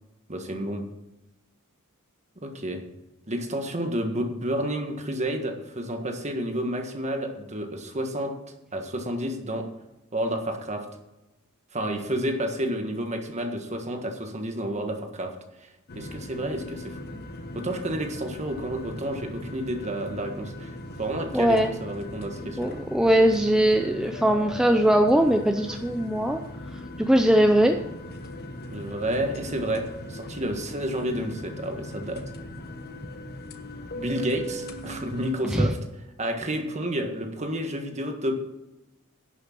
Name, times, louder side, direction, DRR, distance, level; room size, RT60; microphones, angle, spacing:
voice 1, 0.3-0.9 2.4-2.8 3.3-8.3 8.7-9.6 10.1-10.8 11.7-15.3 15.9-17.2 17.5-20.7 21.0-22.7 28.7-32.2 33.9-35.8 36.2-38.3, right 1 dB, 35° right, 4 dB, 1.6 m, -30 dB
sound 1, 15.9-35.4, left 1 dB, 50° left, 1.1 m, -39 dB
voice 2, 21.3-21.7 22.6-26.4 27.0-27.8 35.5-35.7, right 1 dB, 5° right, 4 dB, 0.5 m, -20 dB
11.0 x 6.5 x 6.0 m, 0.96 s
head